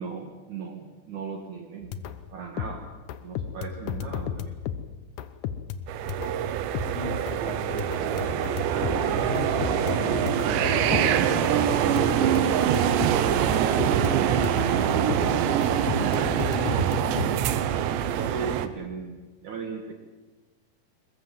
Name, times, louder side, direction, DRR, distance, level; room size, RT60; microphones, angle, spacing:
voice 1, 0.0-2.0 2.3-2.9 3.2-4.5 13.1-17.5 18.2-19.2 19.4-19.9, right 5 dB, 55° right, 3 dB, 2.6 m, -37 dB
sound 1, 1.8-2.3 2.6-6.5 6.7-7.4 7.8-17.4, left 9 dB, 80° left, 1.7 m, -34 dB
sound 2, 5.9-18.7, right 10 dB, 90° right, 3.3 m, -24 dB
voice 2, 6.8-12.3, left 2 dB, 50° left, -1 dB, 7.2 m, -35 dB
22.0 x 21.5 x 7.8 m, 1.2 s
omnidirectional pair, 5.0 m